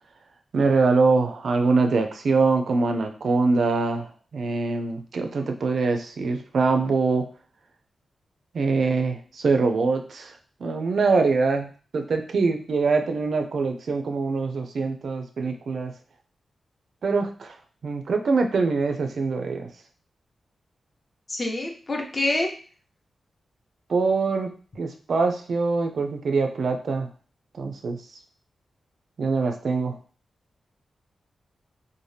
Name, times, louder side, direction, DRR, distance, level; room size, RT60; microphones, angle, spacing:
voice 1, 0.5-7.3 8.5-10.3 10.6-15.9 17.0-17.5 17.8-19.7 23.9-27.1 27.6-28.0 29.2-30.0, right 4 dB, 65° right, 5 dB, 0.3 m, -24 dB
voice 2, 21.3-22.5, left 2 dB, 30° left, 1 dB, 0.6 m, -26 dB
2.7 x 2.1 x 3.2 m, 0.39 s
wide cardioid pair, 125°, 0 cm